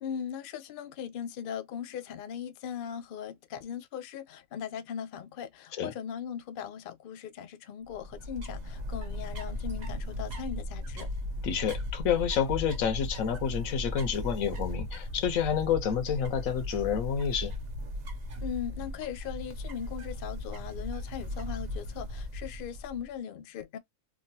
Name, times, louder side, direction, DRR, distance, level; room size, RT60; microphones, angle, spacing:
voice 1, 0.0-11.1 18.4-23.8, left 8 dB, 60° left, 0.5 m, -39 dB
sound 1, 7.9-23.1, left 1 dB, 40° right, 0.7 m, -37 dB
voice 2, 11.4-17.5, left 8 dB, 80° left, 1.1 m, -29 dB
3.1 x 2.4 x 2.6 m
omnidirectional pair, 1.4 m